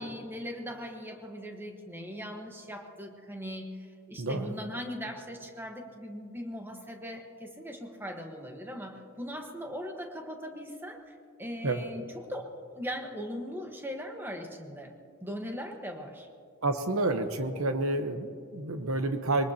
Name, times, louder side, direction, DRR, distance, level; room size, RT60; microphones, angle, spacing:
voice 1, 0.0-12.0 12.3-14.9 15.2-16.3, equal, 10° right, 3 dB, 1.3 m, -40 dB
voice 2, 4.2-4.5 11.6-11.8 16.6-19.5, right 2 dB, 70° right, 7 dB, 1.0 m, -29 dB
23.5 x 19.5 x 2.9 m, 2.4 s
head